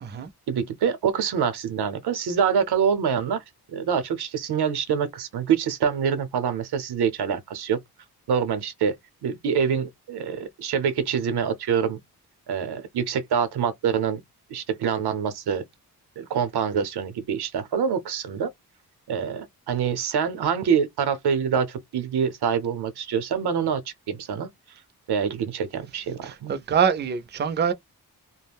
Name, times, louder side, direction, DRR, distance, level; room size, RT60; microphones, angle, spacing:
voice 1, 0.5-3.4 3.7-7.8 8.3-8.9 9.2-12.0 12.5-14.2 14.5-15.6 16.2-18.5 19.1-24.5 25.1-26.5, right 7 dB, 85° right, 0.7 m, -25 dB
voice 2, 26.2-27.7, right 7 dB, 30° right, 0.4 m, -24 dB
2.3 x 2.0 x 3.4 m
wide cardioid pair, 100°, 38 cm